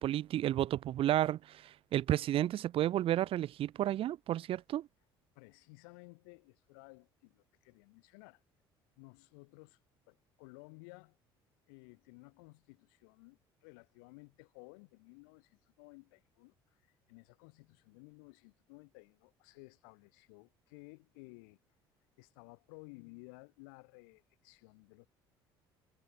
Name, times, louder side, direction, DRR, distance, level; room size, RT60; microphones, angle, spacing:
voice 1, 0.0-4.9, right 12 dB, 55° right, 1.0 m, -32 dB
voice 2, 5.3-8.4 9.0-9.8 10.1-11.2 11.7-16.8 17.1-21.6 22.2-25.1, left 32 dB, 80° left, 5.0 m, -56 dB
hypercardioid pair, 70°, 11 cm